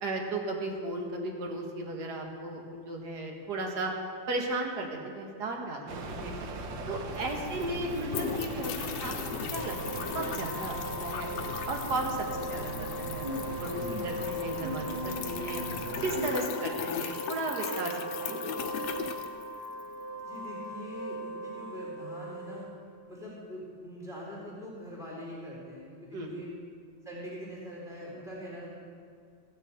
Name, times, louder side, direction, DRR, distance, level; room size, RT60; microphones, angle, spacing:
voice 1, 0.0-3.9 4.3-6.3 6.9-9.2 9.5-11.3 11.7-15.6 16.0-19.0 26.1-26.4, right 2 dB, 45° right, 1 dB, 1.4 m, -35 dB
sound 1, 5.9-16.3, right 1 dB, 85° right, 1.0 m, -39 dB
sound 2, 6.9-7.0 7.2-19.9, left 8 dB, 70° left, 1.7 m, -39 dB
Wind instrument woodwind instrument, 9.5-22.9, equal, 45° left, 2.6 m, -39 dB
voice 2, 20.2-22.6 23.1-26.5 27.0-28.7, equal, ahead, -6 dB, 3.3 m, -43 dB
16.0 x 6.5 x 7.9 m, 2.2 s
omnidirectional pair, 3.5 m